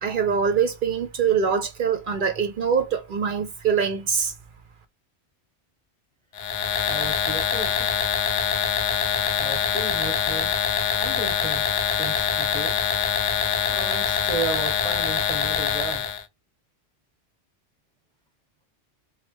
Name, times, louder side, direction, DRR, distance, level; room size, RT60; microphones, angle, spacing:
voice 1, 0.0-4.3, right 6 dB, 60° right, 0.6 m, -23 dB
sound 1, 6.4-16.2, left 8 dB, 60° left, 0.5 m, -24 dB
voice 2, 6.9-7.8 9.4-10.5 11.0-11.6 12.0-13.2 13.7-16.1, right 3 dB, 5° left, 1.0 m, -34 dB
3.1 x 2.1 x 3.1 m
omnidirectional pair, 1.1 m